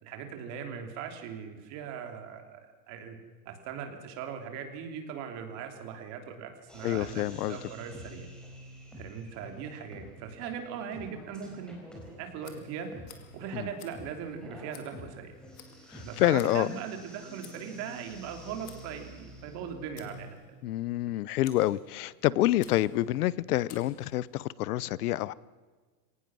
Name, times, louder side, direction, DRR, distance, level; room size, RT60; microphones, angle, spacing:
voice 1, 0.0-3.2 3.4-8.3 8.9-11.7 12.2-13.1 13.3-15.3 16.0-20.3, right 7 dB, 35° right, 5 dB, 3.1 m, -39 dB
sound 1, 6.7-20.3, equal, ahead, 4.2 m, -48 dB
voice 2, 6.8-7.6 13.5-13.7 15.9-16.8 20.6-25.3, left 15 dB, 90° left, 21 dB, 0.9 m, -27 dB
Tick, 12.4-24.5, left 9 dB, 35° left, 2.4 m, -56 dB
22.5 x 18.5 x 6.3 m, 1.4 s
supercardioid pair, 170°, 44 cm